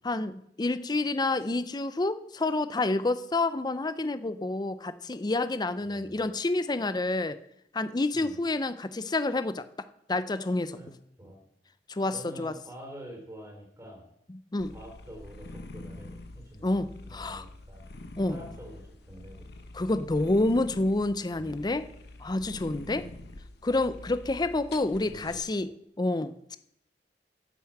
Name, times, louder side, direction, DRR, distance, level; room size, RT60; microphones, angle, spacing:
voice 1, 0.0-7.4 7.7-9.6 10.1-10.8 11.9-12.5 14.5-14.7 16.6-17.4 18.2-18.4 19.7-21.9 22.2-23.0 23.6-25.7 26.0-26.6, left 2 dB, 25° left, 12 dB, 0.5 m, -28 dB
voice 2, 5.8-6.3 8.1-8.4 10.7-11.4 12.1-14.0 14.7-17.9 18.3-19.5 21.4-21.5 22.8-23.2 25.1-25.6, equal, 15° right, 1 dB, 3.8 m, -47 dB
sound 1, 14.6-25.4, left 2 dB, 65° left, 1.1 m, -45 dB
9.3 x 6.9 x 7.7 m, 0.74 s
head